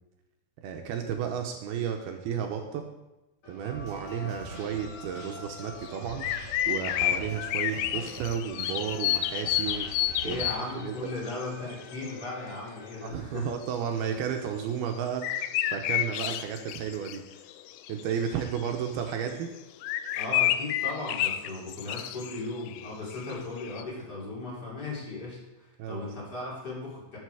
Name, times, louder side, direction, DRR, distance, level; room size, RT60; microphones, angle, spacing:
voice 1, 0.6-2.8 3.5-6.3 6.7-10.4 10.8-10.9 13.0-17.2 17.9-19.5 25.8-26.0, right 8 dB, 75° right, 4 dB, 2.5 m, -33 dB
sound 1, 3.4-13.1, left 3 dB, 50° left, 3.1 m, -47 dB
sound 2, 3.7-10.5, right 2 dB, 55° right, 5.0 m, -44 dB
sound 3, 5.4-5.5 5.8-10.9 11.3-11.4 11.7-12.2 13.6-13.7 14.9-18.9 19.3-19.4 19.8-23.8, left 13 dB, 85° left, 2.8 m, -30 dB
voice 2, 10.2-13.5 20.1-27.2, left 2 dB, 25° left, -5 dB, 3.4 m, -37 dB
12.0 x 7.2 x 4.8 m, 0.97 s
omnidirectional pair, 5.0 m